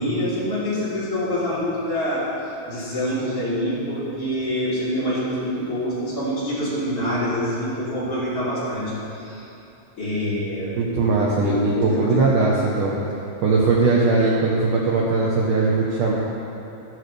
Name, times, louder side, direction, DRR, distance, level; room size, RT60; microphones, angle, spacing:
voice 1, 0.0-2.3 2.7-8.8 9.1-9.5 10.0-10.7 11.4-12.3, equal, 30° left, -11 dB, 4.0 m, -26 dB
voice 2, 10.8-12.9 13.4-16.1, right 3 dB, 85° right, -4 dB, 1.8 m, -20 dB
15.0 x 13.0 x 3.4 m, 2.8 s
omnidirectional pair, 5.5 m